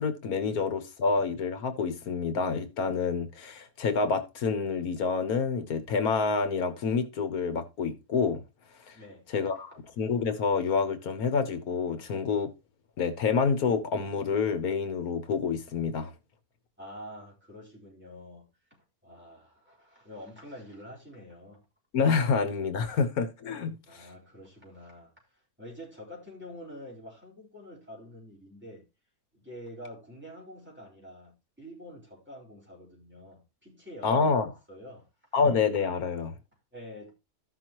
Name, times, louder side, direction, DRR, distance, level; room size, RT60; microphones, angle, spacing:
voice 1, 0.0-8.4 8.9-9.0 9.3-9.7 10.0-12.5 13.0-16.1 21.9-24.1 34.0-34.5 35.3-36.3, left 5 dB, 90° left, 1.7 m, -28 dB
voice 2, 8.9-9.6 16.8-21.6 23.8-28.9 29.3-35.1 36.7-37.2, equal, 5° right, 4.2 m, -47 dB
14.5 x 6.1 x 3.0 m
omnidirectional pair, 1.5 m